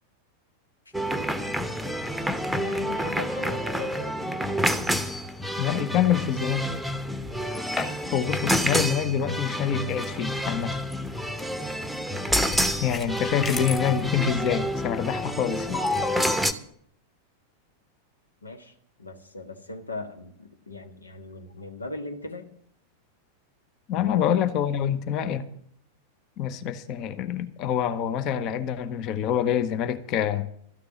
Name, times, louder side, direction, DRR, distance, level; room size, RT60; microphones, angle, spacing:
sound 1, 0.9-16.5, equal, ahead, 1.0 m, -29 dB
voice 1, 2.6-4.1 18.4-22.5 23.9-24.4, left 3 dB, 80° left, 1.5 m, -39 dB
voice 2, 5.6-6.7 8.1-10.8 12.8-15.8 23.9-25.5 26.4-30.5, left 9 dB, 40° left, 0.9 m, -26 dB
sound 2, 7.3-8.2 8.5-8.7 10.0-10.1 10.9-11.4 12.3-13.9 15.7-16.4, left 3 dB, 20° left, 1.8 m, -31 dB
13.5 x 6.7 x 9.5 m
figure-of-eight pair, 90°, 0 cm